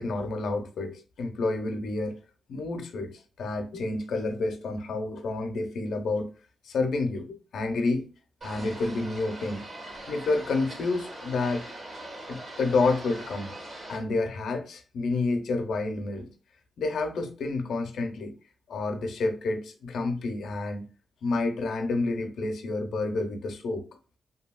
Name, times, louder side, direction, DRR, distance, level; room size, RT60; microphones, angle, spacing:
voice 1, 0.0-2.2 2.5-6.3 6.6-8.1 8.4-9.7 10.1-11.6 12.3-13.5 13.9-16.3 16.8-18.3 18.7-20.9 21.2-23.8, left 3 dB, 80° left, 0.5 m, -29 dB
sound 1, 8.4-14.0, right 1 dB, 50° right, 1.2 m, -42 dB
2.7 x 2.6 x 2.2 m
cardioid pair, 90°, 0 cm